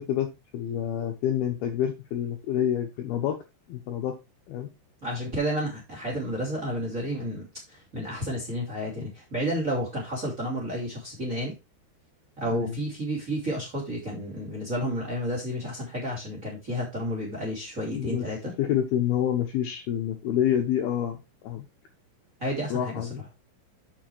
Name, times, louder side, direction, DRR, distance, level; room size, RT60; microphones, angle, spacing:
voice 1, 0.0-3.4 3.7-4.1 4.5-4.7 12.5-12.7 17.9-18.3 18.6-21.7 22.7-23.2, left 10 dB, 75° left, 4 dB, 2.4 m, -28 dB
voice 2, 5.0-11.5 12.4-18.5 22.4-23.1, equal, 20° right, 0 dB, 2.3 m, -31 dB
7.1 x 7.0 x 4.5 m, 0.25 s
omnidirectional pair, 5.5 m